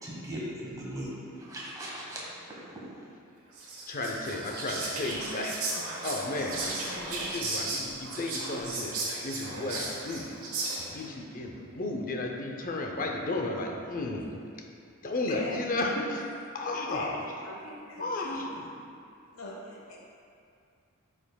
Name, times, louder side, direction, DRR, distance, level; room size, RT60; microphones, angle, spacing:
voice 1, 0.0-2.2, equal, 15° right, -6 dB, 1.3 m, -38 dB
Whispering, 3.5-11.1, right 2 dB, 75° right, 1.3 m, -35 dB
voice 2, 3.9-5.6 6.0-10.3 10.8-14.4 15.0-16.3 16.5-17.2 18.0-18.6, left 2 dB, 40° left, 2 dB, 0.6 m, -33 dB
voice 3, 16.9-18.1 18.3-18.7 19.3-20.0, left 1 dB, 70° left, -3 dB, 1.2 m, -40 dB
9.7 x 5.0 x 2.3 m, 2.4 s
head